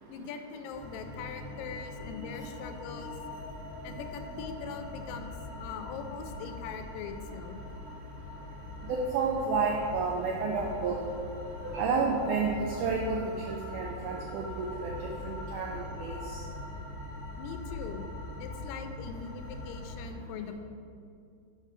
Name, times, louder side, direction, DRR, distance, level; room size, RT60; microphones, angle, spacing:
voice 1, 0.1-3.2 3.8-7.6 12.2-12.3 12.7-12.9 17.4-18.1 18.4-20.5, left 6 dB, 85° left, 7 dB, 2.2 m, -41 dB
sound 1, 0.7-20.0, left 2 dB, 40° left, 0.7 m, -42 dB
voice 2, 8.9-11.0 11.6-13.2 13.5-14.9 15.2-16.2, right 4 dB, 80° right, 0 dB, 1.9 m, -30 dB
6.5 x 5.3 x 5.1 m, 2.4 s
omnidirectional pair, 4.0 m